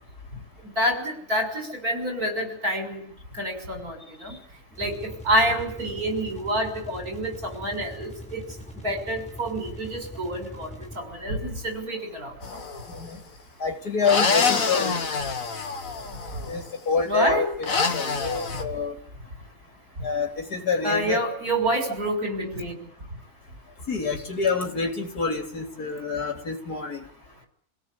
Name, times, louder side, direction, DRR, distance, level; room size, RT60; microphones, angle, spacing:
voice 1, 0.8-3.0 3.4-4.0 4.2-4.4 4.8-8.4 8.8-12.3 17.1-17.5 20.8-22.7, equal, 70° right, 4 dB, 6.9 m, -27 dB
sound 1, 4.7-11.3, equal, 5° left, 4.9 m, -42 dB
sound 2, 12.4-13.0 14.0-16.5 17.6-18.6, left 4 dB, 60° left, 2.2 m, -26 dB
voice 2, 12.9-13.2 13.6-15.0 16.5-19.0 20.0-21.2 23.9-27.0, left 5 dB, 85° left, 4 dB, 4.2 m, -27 dB
28.0 x 17.0 x 8.7 m, 0.62 s
omnidirectional pair, 1.6 m